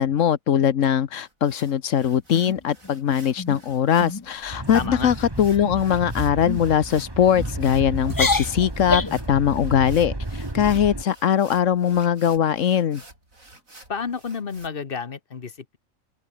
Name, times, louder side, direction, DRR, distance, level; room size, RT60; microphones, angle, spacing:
voice 1, 0.0-10.1 10.5-13.0, left 9 dB, 70° left, 1.3 m, -21 dB
sound 1, 1.2-14.7, right 2 dB, 80° right, 7.6 m, -50 dB
sound 2, 2.4-2.9 3.4-3.6 4.0-4.3 4.6-5.0 5.6-6.0 6.4-6.6 7.3-7.7 8.1-9.3, left 3 dB, 20° left, 0.6 m, -27 dB
sound 3, 4.5-11.0, right 1 dB, 15° right, 2.3 m, -32 dB
voice 2, 4.7-5.1 13.9-15.8, left 5 dB, 45° left, 1.3 m, -30 dB
open air
omnidirectional pair, 1.4 m